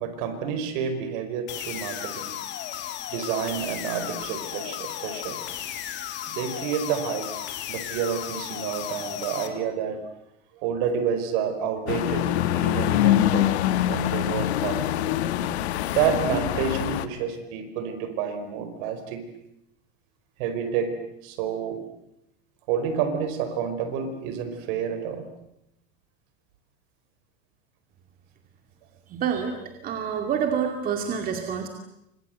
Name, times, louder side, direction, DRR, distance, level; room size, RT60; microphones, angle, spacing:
voice 1, 0.0-2.4 3.1-5.4 6.3-7.3 7.7-10.1 10.5-12.3 12.5-13.5 13.9-14.9 15.9-19.2 20.4-20.9 21.2-21.8 22.7-25.3, right 7 dB, 55° right, 9 dB, 5.0 m, -29 dB
sound 1, 1.5-9.5, left 11 dB, 35° left, 3.2 m, -35 dB
sound 2, 11.9-17.1, left 12 dB, 80° left, 1.9 m, -24 dB
voice 2, 29.1-31.7, right 7 dB, 25° right, 4 dB, 2.5 m, -27 dB
29.5 x 25.5 x 7.9 m, 0.83 s
supercardioid pair, 160°, 32 cm